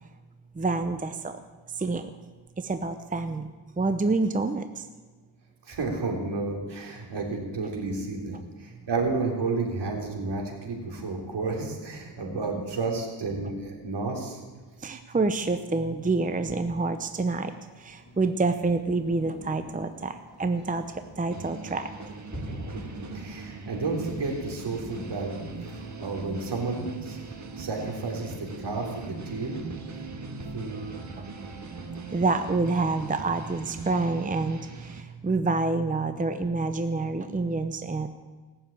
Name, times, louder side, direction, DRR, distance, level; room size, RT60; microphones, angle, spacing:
voice 1, 0.5-1.4 1.7-2.1 2.6-4.9 14.8-20.8 21.2-21.9 32.1-38.1, right 3 dB, 20° right, 9 dB, 0.7 m, -27 dB
voice 2, 5.7-14.4 22.7-25.4 25.7-27.2 27.6-29.6 30.5-30.8, right 3 dB, 65° right, 1 dB, 3.5 m, -31 dB
Thunder, 16.0-28.0, equal, 25° left, 5.5 m, -47 dB
sound 1, 21.3-35.0, right 3 dB, 40° right, 1.6 m, -42 dB
sound 2, 24.9-32.8, right 4 dB, 85° right, 2.2 m, -43 dB
18.5 x 7.2 x 8.6 m, 1.3 s
cardioid pair, 90°, 45 cm